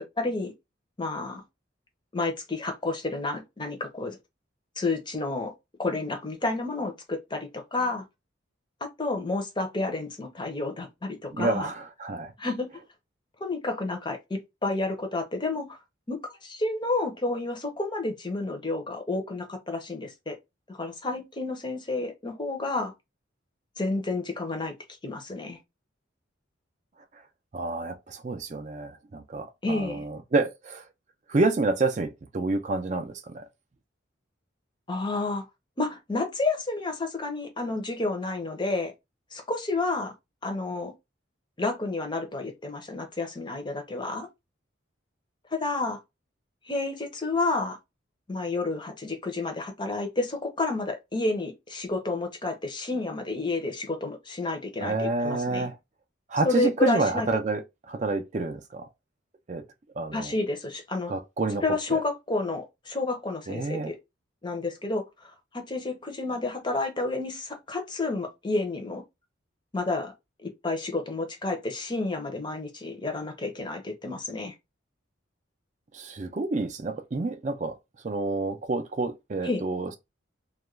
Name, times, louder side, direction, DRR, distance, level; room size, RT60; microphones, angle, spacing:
voice 1, 0.2-0.5 1.0-1.4 2.1-4.2 4.8-5.5 5.8-8.0 8.8-11.7 12.4-12.7 13.4-15.8 16.1-20.4 20.7-22.9 23.8-24.7 25.0-25.6 29.6-30.0 34.9-35.4 35.8-38.9 39.3-40.1 40.4-40.9 41.6-44.3 45.5-46.0 46.6-47.8 48.3-55.7 56.4-57.3 60.1-61.1 61.6-64.0 64.4-69.0 69.7-70.1 70.4-74.5 79.4-79.6, left 3 dB, 25° left, 0.6 m, -30 dB
voice 2, 11.3-12.3 27.5-30.8 31.3-33.4 54.8-55.7 56.3-57.6 57.9-58.9 59.5-59.6 60.0-60.3 61.1-61.6 61.9-62.0 63.5-63.9 75.9-77.7 78.0-80.0, right 3 dB, 35° right, 0.4 m, -28 dB
2.4 x 2.2 x 3.1 m
head